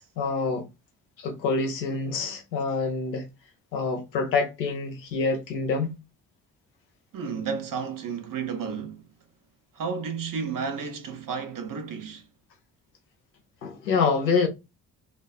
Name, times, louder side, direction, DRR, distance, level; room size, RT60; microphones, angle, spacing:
voice 1, 0.2-0.7 1.2-3.3 3.7-6.0 13.6-14.5, left 4 dB, 90° left, 0.6 m, -26 dB
voice 2, 7.1-9.0 9.7-12.2, right 6 dB, 40° right, 0.8 m, -32 dB
2.4 x 2.3 x 2.3 m
figure-of-eight pair, 40°, 49 cm